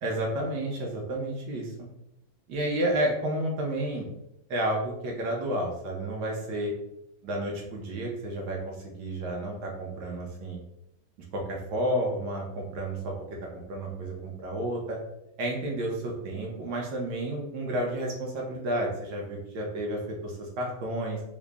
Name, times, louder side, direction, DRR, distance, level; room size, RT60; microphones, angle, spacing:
voice 1, 0.0-1.7 2.5-4.0 4.5-6.7 7.2-10.6 11.3-13.1 13.7-15.0 15.4-21.2, right 1 dB, 65° right, 0 dB, 1.2 m, -31 dB
3.8 x 2.0 x 3.4 m, 0.81 s
omnidirectional pair, 2.2 m